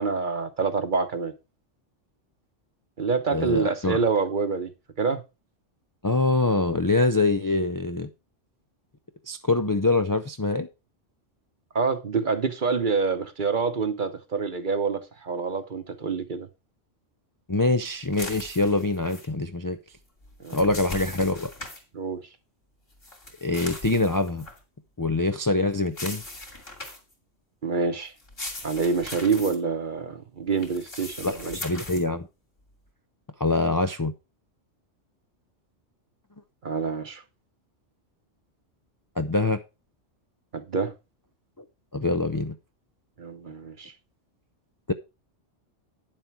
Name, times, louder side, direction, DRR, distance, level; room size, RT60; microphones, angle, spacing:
voice 1, 0.0-1.3 3.0-4.7 5.0-5.2 11.7-16.5 20.4-20.6 21.9-22.3 27.6-28.1 28.6-31.5 36.6-37.2 40.5-40.9 43.2-43.9, right 4 dB, 45° right, 1.1 m, -27 dB
voice 2, 3.3-4.0 6.0-8.1 9.3-10.7 17.5-19.8 20.5-21.5 23.4-24.4 25.0-26.2 31.2-32.3 33.4-34.1 39.2-39.6 41.6-41.7 41.9-42.5 44.9-45.0, left 2 dB, 30° left, 0.4 m, -24 dB
sound 1, 18.1-19.3 20.2-21.8 23.0-24.6 25.9-27.1 28.2-29.6 30.6-32.0, left 2 dB, 50° left, 3.1 m, -39 dB
9.6 x 7.5 x 4.6 m
omnidirectional pair, 1.3 m